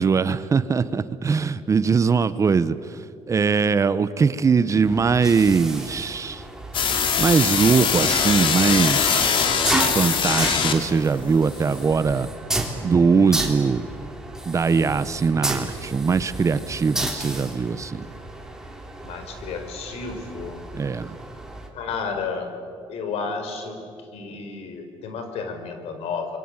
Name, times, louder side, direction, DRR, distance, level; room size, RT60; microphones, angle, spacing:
voice 1, 0.0-6.4 7.2-9.6 9.9-12.3 12.8-13.9 14.5-18.0 20.7-21.2, right 5 dB, 30° right, 14 dB, 0.9 m, -21 dB
sound 1, 4.9-21.7, right 2 dB, 5° right, 3.6 m, -32 dB
sound 2, 6.7-11.1, left 6 dB, 55° left, 3.1 m, -22 dB
voice 2, 19.0-20.6 21.7-22.5 22.9-26.4, left 5 dB, 75° left, 6 dB, 4.8 m, -32 dB
28.0 x 23.5 x 9.0 m, 2.4 s
cardioid pair, 130°, 10 cm